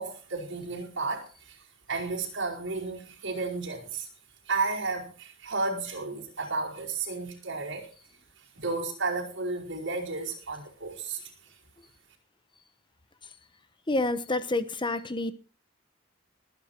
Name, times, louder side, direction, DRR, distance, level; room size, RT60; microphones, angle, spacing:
voice 1, 0.0-1.6 1.9-4.1 4.5-7.9 8.5-11.3, right 3 dB, 65° right, 4.8 m, -32 dB
voice 2, 13.9-15.3, left 2 dB, 25° left, 1.1 m, -28 dB
19.5 x 9.6 x 4.5 m
head